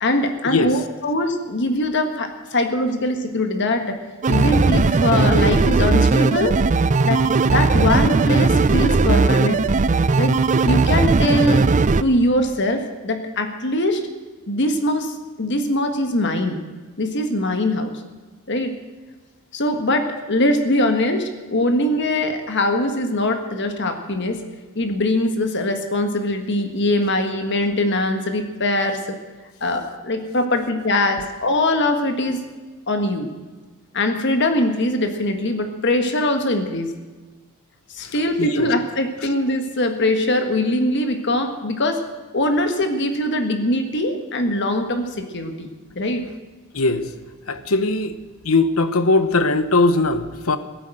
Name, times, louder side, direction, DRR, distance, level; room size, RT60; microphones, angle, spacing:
voice 1, 0.0-4.0 4.3-6.6 7.0-9.6 10.2-10.4 10.6-11.7 12.0-14.0 14.5-16.6 17.0-18.0 18.5-18.7 19.5-24.4 24.7-29.2 29.6-32.4 32.9-33.3 33.9-36.9 37.9-42.0 42.3-45.7 45.9-46.3, left 1 dB, 55° left, 6 dB, 1.6 m, -22 dB
sound 1, 4.2-12.0, right 3 dB, 35° right, 0.5 m, -17 dB
voice 2, 47.5-48.1 48.4-50.6, left 3 dB, 80° left, 11 dB, 1.1 m, -19 dB
16.5 x 9.3 x 7.8 m, 1.3 s
head